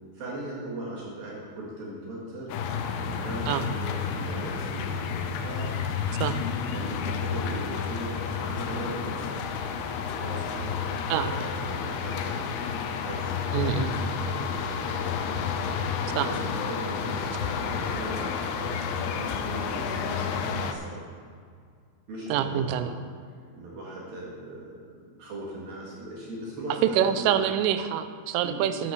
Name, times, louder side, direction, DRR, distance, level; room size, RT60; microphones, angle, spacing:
voice 1, 0.1-2.6 3.1-5.8 6.7-9.4 10.2-10.8 11.1-12.5 13.0-15.1 16.0-21.0 22.1-22.9 23.5-27.4 28.4-28.7, right 1 dB, 60° right, -5 dB, 3.1 m, -39 dB
sound 1, 2.5-20.7, left 6 dB, 80° left, 3.0 m, -30 dB
voice 2, 13.5-13.9 16.2-16.3 22.3-22.9 26.8-28.9, right 10 dB, 90° right, 10 dB, 3.3 m, -26 dB
9.6 x 9.5 x 6.9 m, 2.1 s
omnidirectional pair, 5.6 m